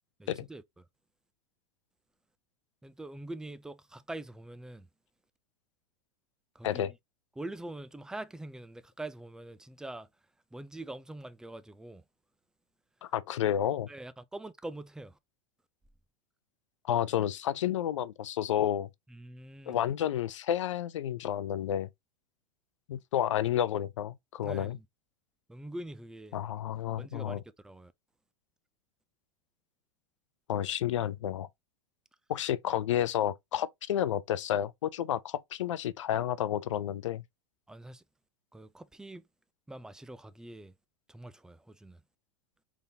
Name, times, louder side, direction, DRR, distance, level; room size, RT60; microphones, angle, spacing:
voice 1, 0.2-0.8 2.8-4.9 6.6-6.8 7.4-10.1 10.5-12.0 13.9-15.2 19.1-19.8 24.4-24.8 25.5-26.4 27.0-27.9 37.7-38.0 38.5-39.2 39.7-40.7 41.1-42.0, right 1 dB, 5° right, 0.4 m, -44 dB
voice 2, 13.0-13.9 16.9-18.9 19.7-21.9 22.9-24.8 26.3-27.4 30.5-31.5 32.3-37.2, left 11 dB, 80° left, 0.5 m, -31 dB
3.9 x 3.5 x 2.7 m
hypercardioid pair, 100°, 15 cm